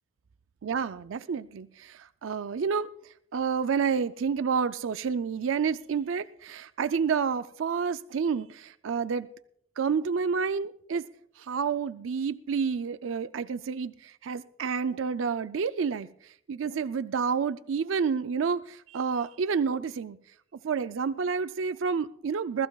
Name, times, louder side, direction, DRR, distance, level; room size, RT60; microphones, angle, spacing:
voice 1, 0.6-2.9 3.3-9.3 9.8-11.1 11.4-16.1 16.5-20.2 20.6-22.7, right 6 dB, 85° right, 13 dB, 0.4 m, -29 dB
21.0 x 14.5 x 2.3 m, 0.67 s
head